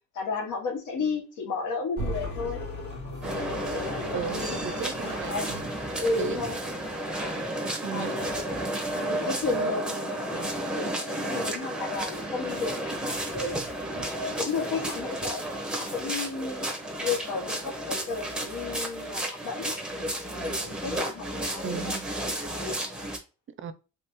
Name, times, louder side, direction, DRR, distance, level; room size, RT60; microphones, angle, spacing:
voice 1, 0.1-2.6 3.2-4.6 5.3-5.6 6.0-6.6 7.0-7.3 7.9-8.5 8.9-13.6 14.2-15.4 15.7-16.7 17.0-19.7 20.3-21.9, left 4 dB, 85° left, 1.1 m, -33 dB
sound 1, 2.0-7.4, left 1 dB, 35° left, 1.9 m, -38 dB
sound 2, 3.2-23.2, right 1 dB, 5° right, 1.1 m, -32 dB
voice 2, 4.1-5.6 6.0-6.4 7.8-8.2 21.6-22.0 23.6-23.7, right 8 dB, 40° right, 0.5 m, -36 dB
3.4 x 3.2 x 2.9 m
cardioid pair, 90°, 30 cm